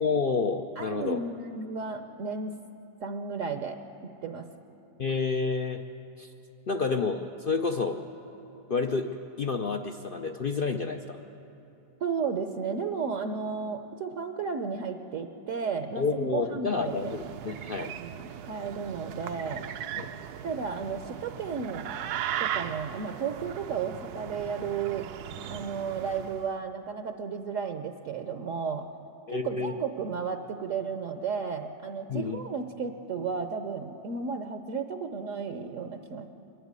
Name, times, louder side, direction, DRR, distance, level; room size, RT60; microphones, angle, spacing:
voice 1, 0.0-1.2 5.0-5.8 6.2-6.3 6.7-8.0 8.7-11.2 16.0-17.9 20.0-20.1 29.3-29.7 32.1-32.4, left 4 dB, 70° left, 5 dB, 0.5 m, -29 dB
voice 2, 0.8-2.6 3.0-4.5 12.0-17.2 17.8-19.7 20.4-21.9 22.4-25.1 25.5-28.9 29.3-36.3, right 5 dB, 60° right, 7 dB, 1.0 m, -33 dB
sound 1, 16.7-26.5, right 10 dB, 75° right, 1.1 m, -38 dB
24.0 x 11.5 x 9.6 m, 2.9 s
omnidirectional pair, 1.8 m